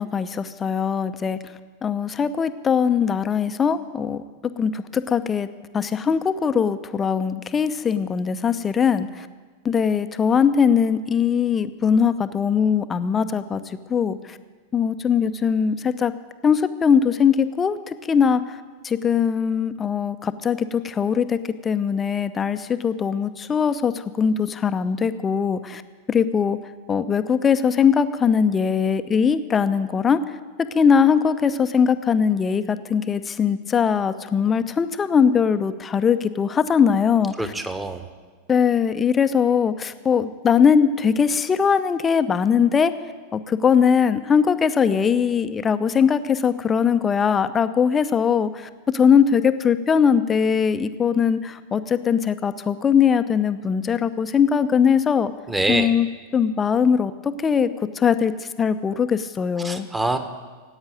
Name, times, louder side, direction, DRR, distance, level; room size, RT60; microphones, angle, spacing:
voice 1, 0.0-1.4 1.8-4.2 4.6-5.5 5.7-9.3 9.6-13.6 13.9-14.4 14.7-16.1 16.4-18.6 18.8-21.4 21.6-25.8 26.1-26.6 26.9-30.2 30.7-37.3 38.5-42.9 43.3-55.3 55.7-56.1 56.3-57.7 58.0-58.3 58.6-59.9, left 7 dB, 20° left, 11 dB, 0.7 m, -20 dB
voice 2, 37.4-38.1 55.5-55.9 59.6-60.2, right 2 dB, 10° right, 8 dB, 1.4 m, -25 dB
16.0 x 9.0 x 9.0 m, 1.4 s
figure-of-eight pair, 90°, 0 cm